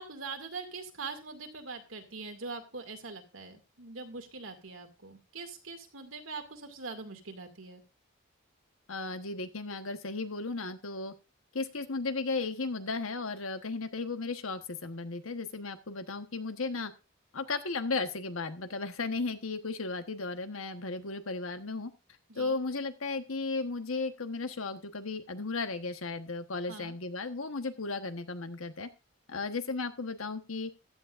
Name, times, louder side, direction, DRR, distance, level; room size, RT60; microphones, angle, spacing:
voice 1, 0.0-7.8 22.3-22.6 26.7-27.0, right 4 dB, 75° right, 5 dB, 2.4 m, -43 dB
voice 2, 8.9-11.1 11.5-16.9 17.3-21.9 22.3-28.9 29.3-30.7, left 3 dB, 85° left, 8 dB, 1.3 m, -35 dB
15.0 x 11.5 x 2.6 m, 0.29 s
head